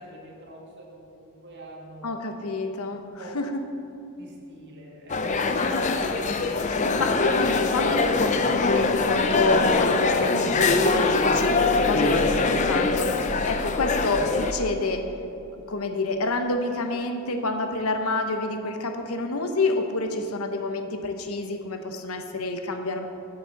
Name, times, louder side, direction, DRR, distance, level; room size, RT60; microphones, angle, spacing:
voice 1, 0.0-2.2 3.2-3.4 4.2-5.5 13.5-13.9, right 1 dB, 50° right, -2 dB, 1.9 m, -45 dB
voice 2, 2.0-3.6 5.7-15.1 15.5-23.1, left 2 dB, 75° left, 5 dB, 0.9 m, -28 dB
sound 1, 5.1-14.5, left 3 dB, 35° left, 0.5 m, -23 dB
8.0 x 7.2 x 7.1 m, 2.8 s
head